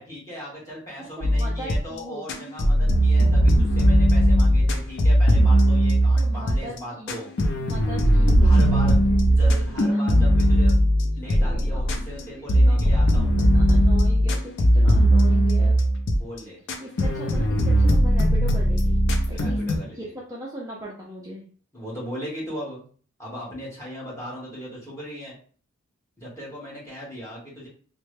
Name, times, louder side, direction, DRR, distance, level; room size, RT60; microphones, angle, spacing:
voice 1, 0.0-7.3 8.4-8.9 9.3-10.7 11.0-13.3 16.2-16.6 19.3-20.1 21.7-22.9 23.2-25.3 26.2-27.7, equal, 15° left, -6 dB, 1.4 m, -38 dB
voice 2, 1.0-2.5 6.2-7.2 7.6-10.0 11.2-12.8 13.4-15.8 16.8-19.0 19.3-19.6 19.9-21.5, right 1 dB, 15° right, -4 dB, 0.5 m, -39 dB
sound 1, 1.2-2.0 2.3-6.8 7.1-12.2 12.5-16.4 16.7-19.8, equal, 55° left, 0.5 m, -19 dB
3.3 x 2.1 x 3.2 m, 0.43 s
head